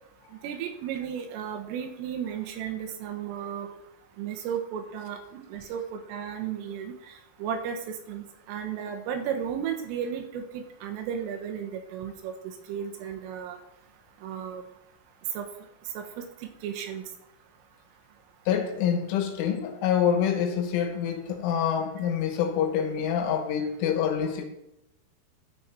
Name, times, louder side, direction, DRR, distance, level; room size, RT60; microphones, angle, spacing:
voice 1, 0.4-3.8 4.2-6.9 7.4-13.6 14.2-14.6 15.4-15.5 16.0-16.2 16.6-17.1, right 8 dB, 85° right, 4 dB, 3.7 m, -34 dB
voice 2, 18.5-24.4, left 8 dB, 80° left, 6 dB, 3.5 m, -26 dB
12.5 x 7.0 x 4.4 m, 0.89 s
omnidirectional pair, 5.8 m